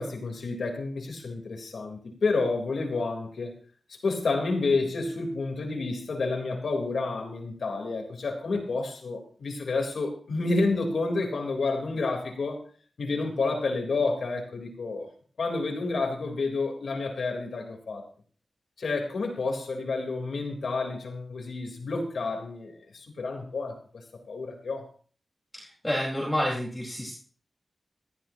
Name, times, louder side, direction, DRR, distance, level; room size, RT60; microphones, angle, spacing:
voice 1, 0.0-3.5 4.0-12.6 13.0-15.1 15.4-18.0 18.8-23.8 24.3-24.9, left 3 dB, 90° left, 2 dB, 3.7 m, -29 dB
voice 2, 25.5-27.1, equal, 10° left, -4 dB, 4.5 m, -29 dB
19.0 x 14.0 x 2.9 m, 0.41 s
wide cardioid pair, 105°, 0 cm